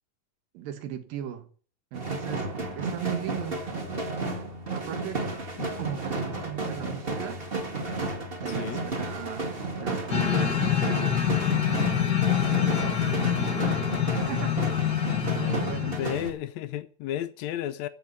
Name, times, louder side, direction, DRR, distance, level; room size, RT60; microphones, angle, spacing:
voice 1, 0.5-1.5 1.9-3.7 4.7-5.3 5.8-7.4 8.0-9.5 9.8-11.2 11.6-13.9 14.2-14.5 15.2-16.0, right 11 dB, 80° right, 3.1 m, -37 dB
sound 1, 1.9-16.3, right 2 dB, 25° right, 1.4 m, -32 dB
voice 2, 8.5-8.9 15.8-17.9, left 12 dB, 75° left, 1.6 m, -33 dB
sound 2, 10.1-16.3, left 10 dB, 45° left, 1.3 m, -26 dB
14.5 x 5.2 x 9.3 m
omnidirectional pair, 4.0 m